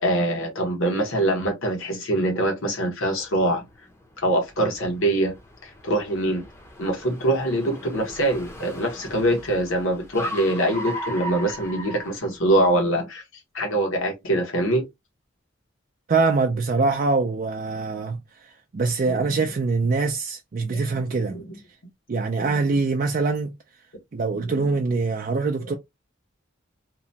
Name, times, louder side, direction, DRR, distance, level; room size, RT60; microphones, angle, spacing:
voice 1, 0.0-3.7 4.2-5.3 5.6-6.4 6.8-13.2 13.5-14.9 20.7-21.0 21.3-21.4 24.4-24.5, right 1 dB, 80° left, 1.1 m, -24 dB
Car, 2.9-12.8, equal, 15° left, 0.6 m, -38 dB
voice 2, 16.1-21.4 22.1-23.9 24.1-25.7, right 4 dB, 45° right, 0.4 m, -24 dB
2.9 x 2.1 x 2.6 m
head